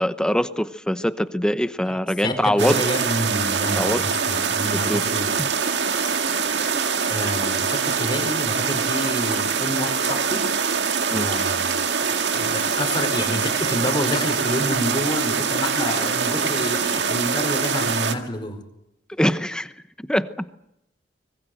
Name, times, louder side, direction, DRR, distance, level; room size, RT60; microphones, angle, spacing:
voice 1, 0.0-2.8 3.8-4.0 4.9-5.0 6.7-6.8 11.1-11.3 19.2-19.7 20.1-20.3, equal, 5° left, 12 dB, 0.9 m, -22 dB
voice 2, 2.2-5.3 7.1-10.5 11.1-11.7 12.3-18.6, equal, 25° left, 5 dB, 4.9 m, -28 dB
sound 1, 2.6-18.1, right 6 dB, 80° right, 1.9 m, -24 dB
24.5 x 21.0 x 7.9 m, 0.82 s
head